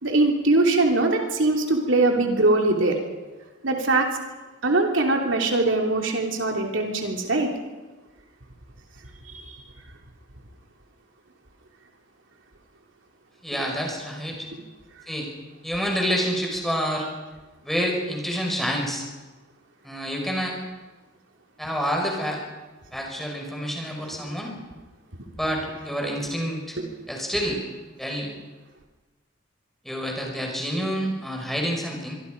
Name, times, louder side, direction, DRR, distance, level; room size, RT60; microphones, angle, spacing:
voice 1, 0.0-3.0 3.6-4.1 4.6-7.5 9.3-9.4, right 2 dB, 75° right, 2 dB, 3.0 m, -21 dB
voice 2, 13.4-14.4 15.1-15.3 15.6-17.1 17.6-19.0 19.8-20.6 21.6-22.4 22.9-24.5 25.4-26.7 27.1-27.6 28.0-28.3 29.8-32.1, equal, ahead, 0 dB, 5.5 m, -28 dB
24.5 x 24.0 x 5.3 m, 1.2 s
head